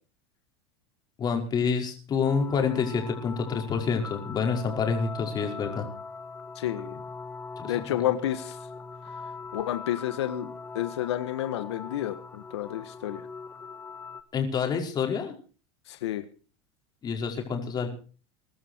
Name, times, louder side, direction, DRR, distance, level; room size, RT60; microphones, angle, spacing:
voice 1, 1.2-5.9 7.6-7.7 14.3-15.3 17.0-17.9, left 6 dB, 30° left, 3 dB, 5.2 m, -28 dB
sound 1, 2.2-14.2, left 4 dB, 15° left, 1.7 m, -41 dB
voice 2, 6.5-7.0 7.6-8.6 9.5-13.2 15.9-16.2, left 12 dB, 90° left, 9 dB, 1.6 m, -30 dB
21.5 x 12.5 x 4.7 m, 0.38 s
supercardioid pair, 125°, 14 cm